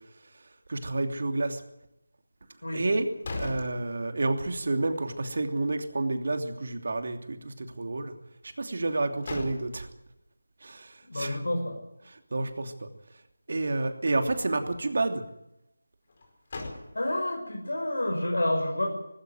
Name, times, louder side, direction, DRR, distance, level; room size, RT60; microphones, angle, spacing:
voice 1, 0.7-1.6 2.7-8.1 8.6-9.9 10.6-11.4 12.3-12.7 13.5-15.2, right 2 dB, 55° right, 6 dB, 2.9 m, -29 dB
sound 1, 2.9-4.5 4.9-5.0 8.8-10.1 16.1-17.4, left 2 dB, 40° left, 4.6 m, -40 dB
voice 2, 11.1-11.8 16.9-18.9, left 1 dB, 85° left, 2 dB, 5.9 m, -29 dB
19.0 x 17.0 x 9.3 m, 0.88 s
figure-of-eight pair, 170°, 0 cm